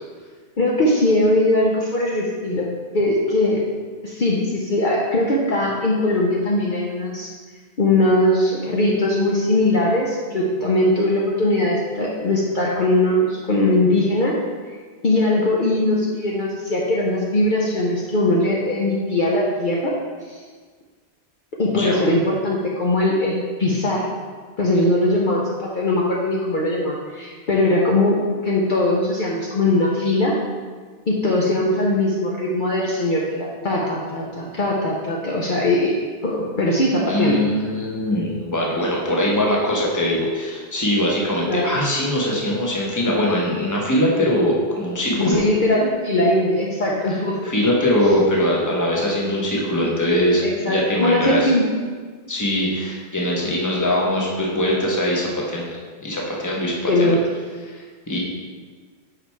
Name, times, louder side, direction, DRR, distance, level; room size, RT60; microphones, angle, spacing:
voice 1, 0.6-2.7 2.9-3.7 4.0-7.3 7.8-14.3 15.0-19.9 20.3-20.4 21.6-24.1 24.6-30.4 31.1-35.9 36.2-37.4 41.5-41.7 45.2-47.5 50.4-51.7 56.9-57.2, left 1 dB, 50° left, -4 dB, 0.9 m, -20 dB
voice 2, 21.7-22.1 37.1-45.4 47.4-51.5 52.3-55.8 56.0-57.2 57.7-58.2, left 1 dB, 15° left, -3 dB, 1.1 m, -22 dB
5.8 x 5.0 x 4.5 m, 1.5 s
omnidirectional pair, 1.1 m